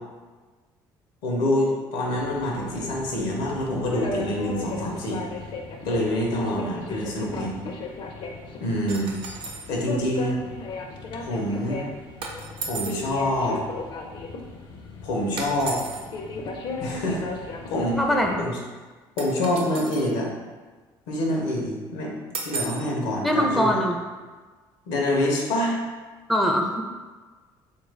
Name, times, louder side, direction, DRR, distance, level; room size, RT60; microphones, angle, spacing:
voice 1, 1.2-5.2 5.8-7.5 8.6-9.1 9.7-10.4 11.2-11.9 12.7-13.6 15.0-15.8 16.8-17.3 17.7-18.0 18.4-18.6 19.2-20.3 21.1-22.1 22.4-23.8 24.9-25.8, left 1 dB, 85° left, -1 dB, 0.8 m, -26 dB
sound 1, 2.0-18.5, left 3 dB, 55° left, 0.5 m, -36 dB
sound 2, 8.9-9.7 12.2-13.1 15.4-16.1 19.2-20.1 22.3-22.9, right 4 dB, 60° right, 0.6 m, -34 dB
voice 2, 18.0-18.5 23.2-24.0 26.3-26.8, equal, ahead, 2 dB, 0.4 m, -22 dB
3.3 x 2.5 x 3.2 m, 1.4 s
supercardioid pair, 80°, 10 cm